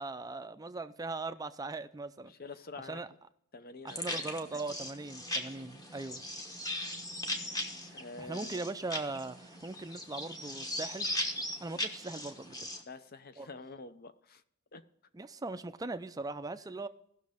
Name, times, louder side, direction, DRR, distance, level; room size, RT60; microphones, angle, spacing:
voice 1, 0.0-2.3 2.7-3.1 3.8-6.2 7.7-11.1 11.6-12.7 13.4-13.5 15.1-16.9, right 3 dB, 15° right, 0.5 m, -40 dB
voice 2, 2.2-3.0 3.5-4.6 5.0-5.1 7.9-8.7 12.9-14.4 14.7-14.8, left 3 dB, 45° left, 0.7 m, -48 dB
sound 1, 3.9-12.8, left 1 dB, 15° left, 1.1 m, -39 dB
17.0 x 6.3 x 3.5 m
head